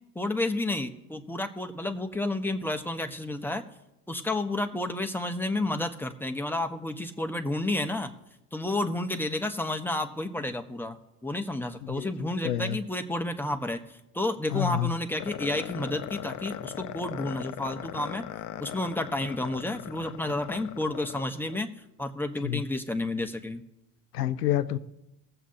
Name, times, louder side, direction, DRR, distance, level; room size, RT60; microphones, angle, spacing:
voice 1, 0.1-3.6 4.1-8.1 8.5-11.0 11.2-18.2 18.6-21.7 22.0-23.6, left 2 dB, 5° left, 5 dB, 1.1 m, -31 dB
voice 2, 12.4-12.8 14.5-14.9 22.4-22.6 24.1-24.8, left 12 dB, 90° left, 15 dB, 0.7 m, -27 dB
sound 1, 15.2-21.6, left 11 dB, 40° left, 0.7 m, -39 dB
21.5 x 7.9 x 2.9 m, 0.92 s
hypercardioid pair, 70°, 46 cm